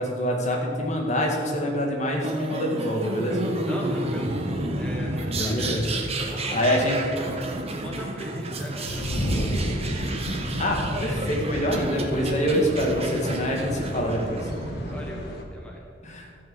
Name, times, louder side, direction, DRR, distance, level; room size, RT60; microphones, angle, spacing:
voice 1, 0.0-3.5 5.4-5.8 6.5-7.1 10.6-14.5 16.0-16.3, equal, 40° left, 0 dB, 2.1 m, -26 dB
sound 1, 2.2-14.9, right 1 dB, 35° right, 1.2 m, -30 dB
voice 2, 3.7-4.3 4.8-5.6 6.1-9.8 14.9-15.8, equal, 5° left, -2 dB, 1.2 m, -40 dB
sound 2, 8.9-15.4, equal, 60° left, 1.6 m, -32 dB
13.5 x 6.4 x 7.2 m, 2.3 s
head